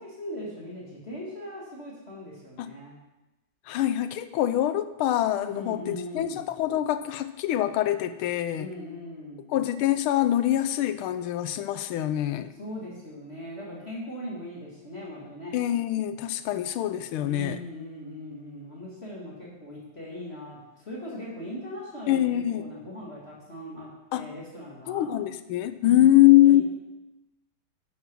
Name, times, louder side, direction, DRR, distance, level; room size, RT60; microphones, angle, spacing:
voice 1, 0.0-3.0 5.5-6.4 8.5-9.5 12.6-15.6 17.2-25.1 25.8-26.6, left 1 dB, 30° left, -6 dB, 2.2 m, -39 dB
voice 2, 3.7-8.7 9.5-12.5 15.5-17.6 22.1-22.7 24.1-24.3 24.9-26.6, left 13 dB, 85° left, 12 dB, 1.5 m, -24 dB
11.0 x 5.9 x 6.1 m, 1.0 s
omnidirectional pair, 2.3 m